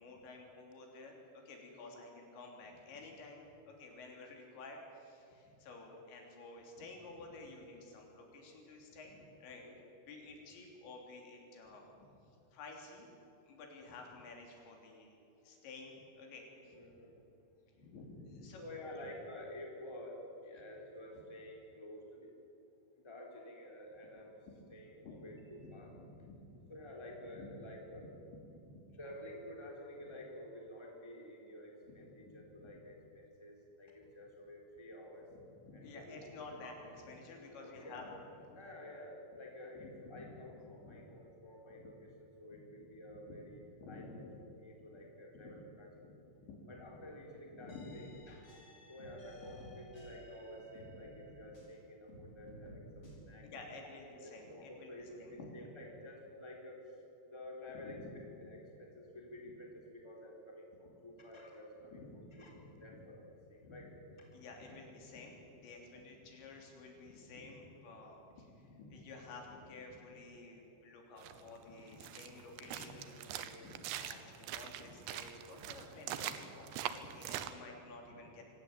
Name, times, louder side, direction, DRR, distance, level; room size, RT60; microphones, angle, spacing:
voice 1, 0.0-9.6 10.1-11.9 12.3-13.1 13.4-15.2 15.4-16.8 17.7-19.1 24.5-24.7 25.0-25.2 25.6-26.7 27.3-27.5 28.3-28.8 31.9-32.3 32.6-32.7 35.6-38.1 38.5-38.6 39.8-40.3 40.6-41.0 41.8-41.9 42.5-42.6 42.9-43.4 43.8-44.3 45.3-45.7 46.0-47.0 47.5-48.0 50.9-51.4 52.4-55.5 57.7-58.5 61.9-63.0 63.6-63.9 64.3-78.4, left 3 dB, 80° left, 1 dB, 5.6 m, -52 dB
voice 2, 16.5-17.2 18.6-22.3 23.0-24.4 24.7-25.9 26.7-28.1 29.0-35.3 35.7-36.7 37.6-38.1 38.5-44.2 44.6-46.1 46.7-48.5 48.9-53.4 53.9-56.8 57.2-63.9 64.2-64.3 72.2-72.5, left 1 dB, 5° left, -1 dB, 3.3 m, -51 dB
sound 1, 47.7-51.8 52.1-53.1, equal, 35° left, 6.6 m, -55 dB
sound 2, 71.2-77.5, right 11 dB, 75° right, 3.0 m, -43 dB
25.0 x 17.0 x 8.9 m, 2.8 s
omnidirectional pair, 5.1 m